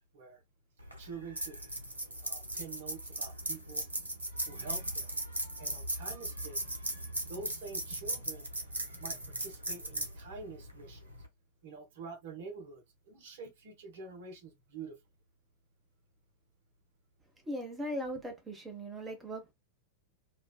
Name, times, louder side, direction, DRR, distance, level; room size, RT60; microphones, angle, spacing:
sound 1, 0.8-11.3, right 1 dB, 75° right, 1.1 m, -38 dB
voice 1, 1.0-1.6 2.2-3.8 4.5-5.1 5.6-6.6 7.3-8.5 9.0-11.1 11.6-15.0, right 4 dB, 55° right, 1.1 m, -47 dB
voice 2, 17.5-19.5, equal, 15° right, 1.1 m, -39 dB
4.5 x 2.5 x 2.3 m
figure-of-eight pair, 90°, 0 cm